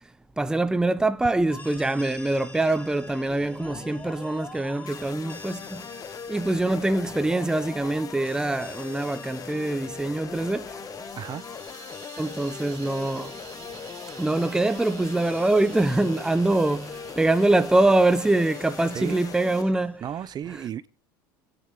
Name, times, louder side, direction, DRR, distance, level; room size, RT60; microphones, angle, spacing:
voice 1, 0.4-5.8 6.3-10.8 12.2-13.4 14.2-20.0, right 2 dB, 5° right, 0.7 m, -24 dB
sound 1, 1.5-20.0, left 2 dB, 15° left, 3.4 m, -46 dB
sound 2, 4.9-19.6, left 7 dB, 35° left, 0.8 m, -40 dB
sound 3, 10.0-19.7, right 12 dB, 70° right, 1.9 m, -49 dB
voice 2, 11.2-11.5 18.9-19.3 20.0-20.9, right 9 dB, 40° right, 0.8 m, -34 dB
26.0 x 9.9 x 3.9 m
supercardioid pair, 90°, 11 cm